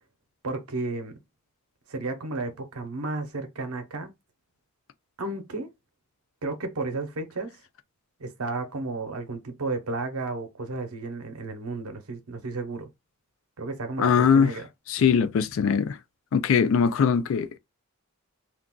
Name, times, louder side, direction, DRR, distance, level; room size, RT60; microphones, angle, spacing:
voice 1, 0.4-1.2 1.9-4.1 5.2-5.7 6.4-7.5 8.2-12.9 13.6-14.7, right 3 dB, 75° right, 0.8 m, -33 dB
voice 2, 14.0-14.5 14.9-16.0 16.3-17.6, left 6 dB, 65° left, 0.3 m, -21 dB
2.5 x 2.3 x 3.7 m
head